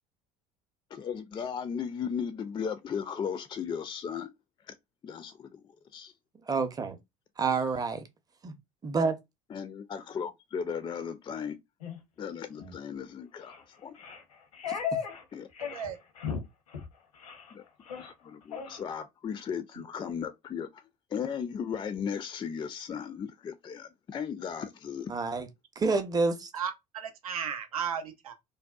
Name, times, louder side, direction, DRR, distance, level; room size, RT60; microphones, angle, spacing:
voice 1, 0.9-4.3 4.7-4.8 5.0-5.6 5.9-6.1 9.5-11.6 12.2-13.9 15.3-15.5 17.5-17.6 18.0-20.8 21.1-25.1, left 7 dB, 25° left, 0.3 m, -36 dB
voice 2, 6.5-7.0 7.4-8.0 8.4-8.5 8.8-9.2 25.1-25.5 25.8-26.5, right 4 dB, 20° right, 0.6 m, -28 dB
sound 1, 11.8-12.0 12.5-12.8 13.4-13.6 13.9-15.2 15.5-15.9 16.2-16.4 16.7-16.9 17.2-17.5 17.8-18.1 18.5-18.8, left 7 dB, 85° left, 0.7 m, -36 dB
voice 3, 26.5-28.3, right 8 dB, 85° right, 0.5 m, -35 dB
2.6 x 2.1 x 2.3 m
hypercardioid pair, 65°, 18 cm